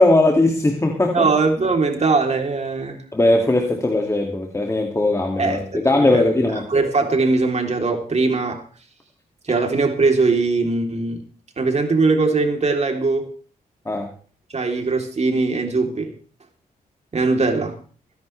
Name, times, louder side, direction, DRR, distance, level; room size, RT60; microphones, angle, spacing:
voice 1, 0.0-1.3 3.1-6.7 13.9-14.1, left 2 dB, 20° left, 1 dB, 2.4 m, -19 dB
voice 2, 1.1-3.0 5.4-6.2 6.7-8.6 9.5-11.2 11.6-13.3 14.5-16.1 17.1-17.8, right 3 dB, 45° right, 3 dB, 3.5 m, -20 dB
24.5 x 10.5 x 3.4 m, 0.42 s
cardioid pair, 70°, 16 cm